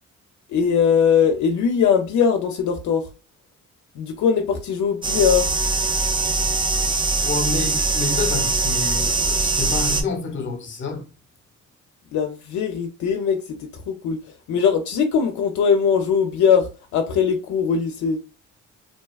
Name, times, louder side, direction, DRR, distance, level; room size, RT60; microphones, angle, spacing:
voice 1, 0.5-3.1 4.0-5.5 12.1-14.2 14.5-18.2, left 7 dB, 70° left, 0.5 m, -20 dB
sound 1, 5.0-10.0, right 3 dB, 15° right, 0.4 m, -22 dB
voice 2, 7.2-11.0, left 4 dB, 40° left, 0.8 m, -28 dB
2.6 x 2.3 x 2.3 m
cardioid pair, 90°, 30 cm